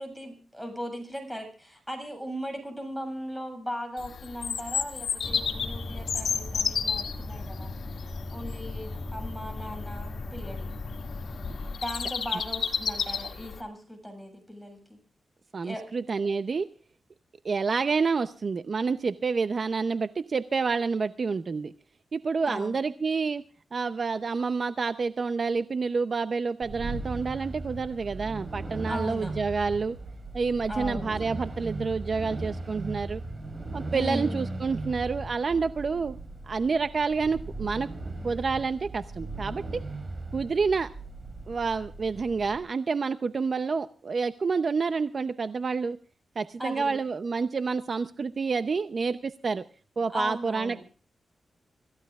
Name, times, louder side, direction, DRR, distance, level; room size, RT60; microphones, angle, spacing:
voice 1, 0.0-7.7 8.3-10.7 11.8-15.0 15.6-15.8 22.5-22.8 28.9-29.3 30.7-31.2 33.9-34.4 46.6-47.0 50.1-50.8, equal, ahead, 5 dB, 7.2 m, -37 dB
Bird vocalization bird call bird song, 4.0-13.6, left 6 dB, 80° left, 2.1 m, -33 dB
sound 1, 5.2-11.8, left 2 dB, 30° left, 2.0 m, -38 dB
voice 2, 15.5-16.7 17.4-21.7 22.1-23.4 23.7-30.0 30.3-33.2 33.7-36.2 36.5-37.9 38.2-39.8 40.3-40.9 41.5-46.0 46.4-49.6 50.0-50.8, right 4 dB, 45° right, 10 dB, 0.7 m, -28 dB
Acceleration Car, 26.6-42.6, right 2 dB, 30° right, 3.8 m, -37 dB
26.5 x 15.0 x 2.4 m, 0.38 s
wide cardioid pair, 115°, 0 cm